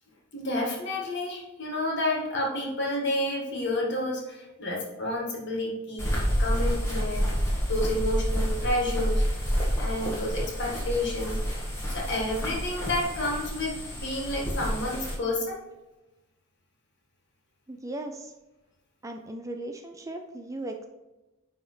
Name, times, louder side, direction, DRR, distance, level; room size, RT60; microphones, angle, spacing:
voice 1, 0.3-7.4 7.7-9.2 9.8-11.4 11.9-15.6, left 1 dB, 55° left, -2 dB, 1.9 m, -30 dB
sound 1, 6.0-15.1, equal, 15° left, 1.7 m, -29 dB
voice 2, 17.7-18.3 19.0-20.8, right 1 dB, 15° right, 4 dB, 0.5 m, -37 dB
9.9 x 3.6 x 4.5 m, 1.1 s
head